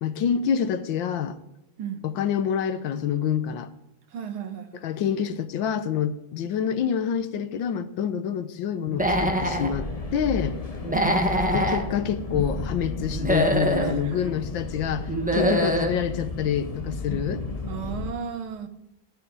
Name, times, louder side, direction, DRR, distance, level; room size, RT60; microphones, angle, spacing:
voice 1, 0.0-1.4 2.0-3.7 4.8-10.6 11.5-17.4, left 8 dB, 70° left, 12 dB, 1.5 m, -27 dB
voice 2, 4.1-4.9 10.9-11.2 13.8-14.3 15.3-15.6 17.7-18.7, right 7 dB, 85° right, 9 dB, 2.0 m, -34 dB
Human voice / Animal, 8.9-9.7 10.8-11.8 13.1-13.9 15.1-15.9, equal, 5° right, 1.3 m, -24 dB
sound 1, 9.0-18.1, left 3 dB, 25° left, 0.9 m, -33 dB
14.0 x 10.0 x 4.8 m, 0.89 s
omnidirectional pair, 2.2 m